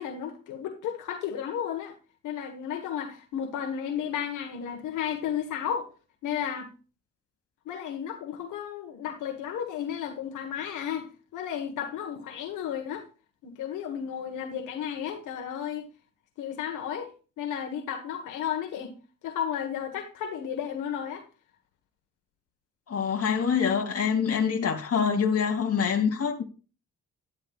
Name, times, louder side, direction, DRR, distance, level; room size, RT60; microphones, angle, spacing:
voice 1, 0.0-2.0 2.2-5.9 6.2-6.7 7.6-13.0 13.4-15.9 16.4-17.1 17.4-18.9 19.2-21.2, left 9 dB, 85° left, 1.5 m, -33 dB
voice 2, 22.9-26.4, left 6 dB, 50° left, 2.5 m, -25 dB
11.5 x 11.0 x 2.4 m
cardioid pair, 90°, 30 cm